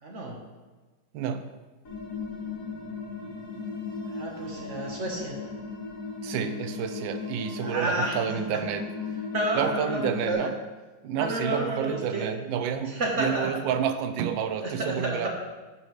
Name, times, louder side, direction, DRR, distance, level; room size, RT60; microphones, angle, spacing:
voice 1, 0.0-0.4 4.1-5.4 7.6-8.2 9.3-10.5 11.2-12.3 12.9-13.5 14.6-15.3, right 1 dB, 40° right, -1 dB, 1.3 m, -30 dB
voice 2, 1.1-1.5 4.4-4.6 6.2-9.2 9.5-10.6 11.0-15.3, right 8 dB, 75° right, 9 dB, 1.2 m, -30 dB
sound 1, 1.8-10.3, left 4 dB, 45° left, 1.7 m, -36 dB
9.7 x 6.3 x 3.2 m, 1.3 s
omnidirectional pair, 2.2 m